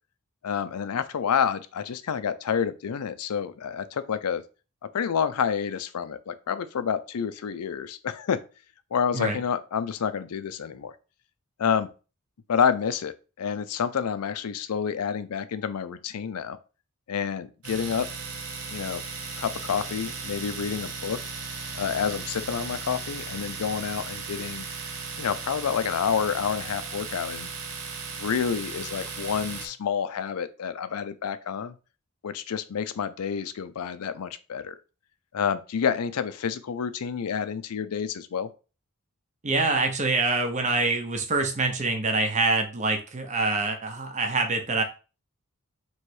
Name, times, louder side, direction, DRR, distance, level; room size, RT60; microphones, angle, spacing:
voice 1, 0.4-4.4 4.9-8.4 8.9-10.9 11.6-11.9 12.5-16.6 17.1-18.1 18.7-19.0 19.4-21.2 21.7-24.7 25.2-27.5 28.2-31.7 32.2-34.8 35.3-38.5, left 7 dB, 80° left, 13 dB, 0.5 m, -28 dB
Domestic sounds home sounds, 17.6-29.7, right 4 dB, 70° right, 1.0 m, -36 dB
voice 2, 39.4-44.8, right 3 dB, 35° right, 5 dB, 0.7 m, -25 dB
3.1 x 3.1 x 4.5 m, 0.34 s
head